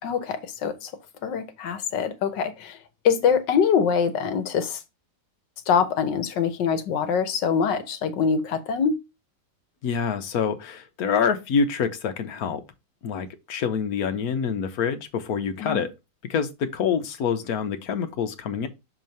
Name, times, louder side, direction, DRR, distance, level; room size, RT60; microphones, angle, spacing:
voice 1, 0.0-0.9 1.2-2.8 3.0-4.8 5.7-9.0 15.6-15.8, left 6 dB, 75° left, 1.5 m, -24 dB
voice 2, 9.8-12.6 13.0-15.9 16.3-18.7, left 6 dB, 60° left, 1.3 m, -26 dB
6.4 x 3.0 x 5.2 m
omnidirectional pair, 2.0 m